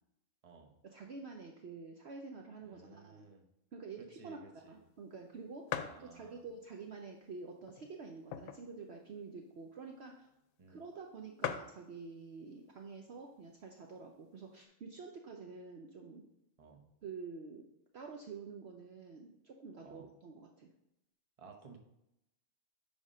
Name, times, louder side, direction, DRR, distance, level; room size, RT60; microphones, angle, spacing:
voice 1, 0.8-3.3 3.7-10.3 10.7-16.2 17.0-17.6 17.9-20.7, right 4 dB, 55° right, 2 dB, 0.8 m, -48 dB
voice 2, 2.6-3.4 4.1-4.8 5.7-6.4 10.6-10.8 16.6-16.8 19.8-20.1 21.4-21.8, right 4 dB, 30° right, 4 dB, 0.8 m, -56 dB
sound 1, 4.7-4.8 5.2-5.3 5.7-6.1 6.7-6.8 7.6-8.8 9.1-9.2 9.4-9.7 10.4-10.5 10.8-10.9 11.1-11.2 11.4-11.8 12.7-13.0 13.6-13.7 13.8-14.6, left 9 dB, 80° left, 1.0 m, -40 dB
9.5 x 3.6 x 5.0 m, 0.84 s
omnidirectional pair, 1.5 m